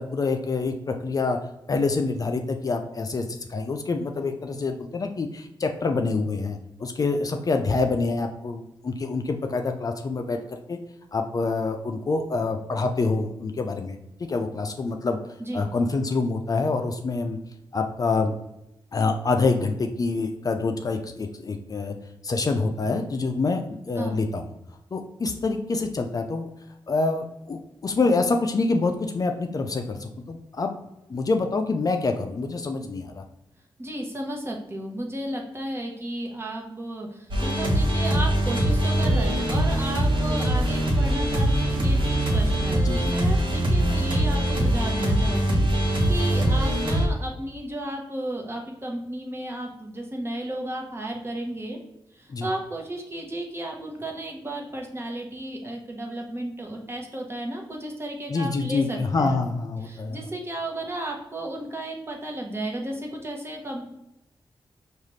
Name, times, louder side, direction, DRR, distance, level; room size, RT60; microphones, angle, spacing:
voice 1, 0.0-1.4 1.7-10.8 11.1-15.2 15.5-17.4 17.7-18.4 18.9-21.9 22.2-23.6 23.9-24.4 24.9-26.5 26.9-30.7 31.1-33.2 42.8-43.0 52.3-52.5 58.3-60.2, left 3 dB, 40° left, 5 dB, 0.4 m, -26 dB
voice 2, 33.8-51.8 52.1-59.4 59.8-63.9, right 1 dB, 25° right, 0 dB, 0.9 m, -33 dB
sound 1, 37.3-47.0, right 1 dB, 65° right, 1.0 m, -22 dB
5.3 x 2.4 x 3.1 m, 0.88 s
wide cardioid pair, 90°, 9 cm